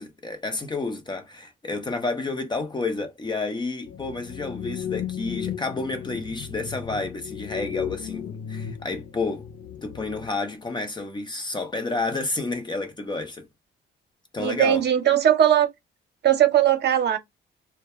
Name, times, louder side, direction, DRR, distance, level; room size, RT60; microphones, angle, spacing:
voice 1, 0.0-9.4 9.8-13.5 14.3-14.8, left 3 dB, 20° left, 0.6 m, -30 dB
sound 1, 3.9-10.3, left 9 dB, 65° left, 0.4 m, -35 dB
voice 2, 14.4-15.7 16.2-17.2, right 10 dB, 60° right, 0.7 m, -19 dB
2.2 x 2.1 x 2.9 m
cardioid pair, 90°, 20 cm